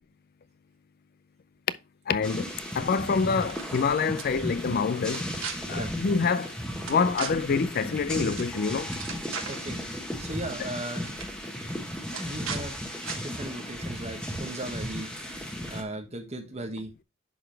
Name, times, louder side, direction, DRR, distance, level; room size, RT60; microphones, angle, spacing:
voice 1, 2.1-5.3 5.7-6.5 6.9-8.9 10.6-10.7, left 5 dB, 45° left, 0.4 m, -26 dB
sound 1, 2.2-15.8, equal, 5° left, 1.2 m, -35 dB
sound 2, 3.3-3.8 4.2-4.3 5.1-5.5 6.9-7.3 8.4-8.5 8.8-9.6 10.6-10.7 11.0-11.3 12.1-12.6 13.0-13.2, right 6 dB, 65° right, 1.3 m, -36 dB
voice 2, 9.5-9.8 10.2-11.1 12.2-12.8 13.1-15.1 15.7-16.9, right 1 dB, 30° right, 1.4 m, -37 dB
11.0 x 4.0 x 3.3 m
head